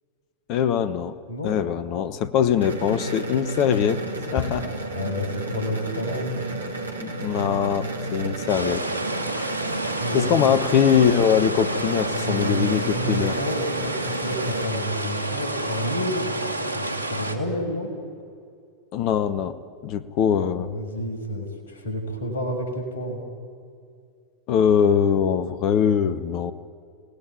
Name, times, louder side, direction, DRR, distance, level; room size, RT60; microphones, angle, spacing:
voice 1, 0.5-1.2 1.4-4.0 4.3-4.7 7.0-8.9 10.1-13.4 18.9-20.7 24.5-26.5, left 8 dB, 40° left, 15 dB, 1.1 m, -22 dB
sound 1, 2.6-14.7, right 2 dB, 75° right, 2.5 m, -32 dB
voice 2, 4.6-6.3 10.0-10.5 12.1-17.9 20.4-23.2, equal, 60° left, 3 dB, 5.9 m, -30 dB
sound 2, 8.5-17.4, right 1 dB, 85° left, 2.2 m, -30 dB
29.0 x 18.5 x 9.9 m, 2.3 s
figure-of-eight pair, 90°, 0 cm